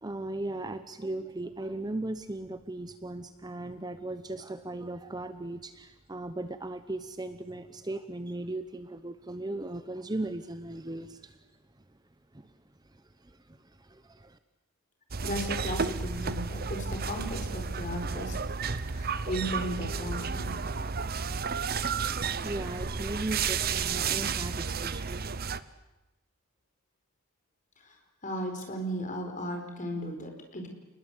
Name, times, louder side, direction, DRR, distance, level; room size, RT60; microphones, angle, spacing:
voice 1, 0.0-11.4 12.3-12.5 12.8-14.4 22.4-25.3, right 2 dB, 20° right, 10 dB, 0.8 m, -37 dB
sound 1, 15.1-25.6, right 5 dB, 45° right, 0.8 m, -32 dB
voice 2, 15.2-18.4 18.9-20.6 27.8-28.0 28.2-30.7, equal, 35° left, 4 dB, 4.5 m, -35 dB
29.0 x 20.5 x 8.2 m, 1.0 s
head